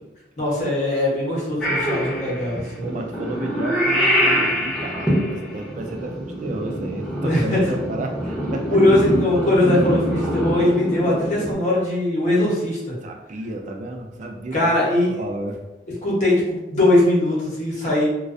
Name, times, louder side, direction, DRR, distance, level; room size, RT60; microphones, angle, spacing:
voice 1, 0.4-2.9 7.2-7.6 8.7-12.9 14.5-15.1 16.0-18.1, left 1 dB, 40° left, -5 dB, 0.8 m, -20 dB
Purr / Meow, 1.6-11.5, equal, 5° left, 0.6 m, -24 dB
voice 2, 2.8-8.8 13.0-14.9 15.2-15.6, right 2 dB, 45° right, 3 dB, 0.3 m, -32 dB
2.4 x 2.2 x 2.4 m, 1.1 s
head